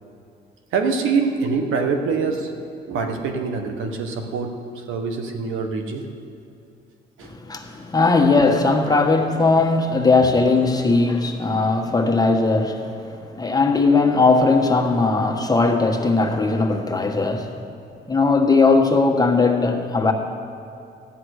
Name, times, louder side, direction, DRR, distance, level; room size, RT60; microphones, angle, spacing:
voice 1, 0.7-2.5 2.9-4.6 4.9-6.0 7.2-7.3, right 5 dB, 90° right, 4 dB, 1.3 m, -24 dB
voice 2, 7.2-17.6 18.1-20.1, left 3 dB, 20° left, 2 dB, 1.4 m, -19 dB
13.5 x 9.5 x 6.5 m, 2.5 s
cardioid pair, 90°, 20 cm